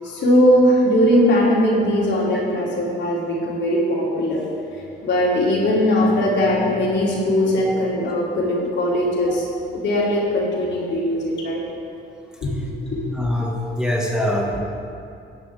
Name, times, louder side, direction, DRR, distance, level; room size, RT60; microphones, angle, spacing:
voice 1, 0.0-4.4 5.0-9.4 9.7-11.6 12.4-12.6 12.9-13.0, equal, 65° left, -5 dB, 3.4 m, -19 dB
voice 2, 13.1-14.6, left 1 dB, 5° right, -3 dB, 1.9 m, -24 dB
15.5 x 10.5 x 3.7 m, 2.5 s
cardioid pair, 90°, 20 cm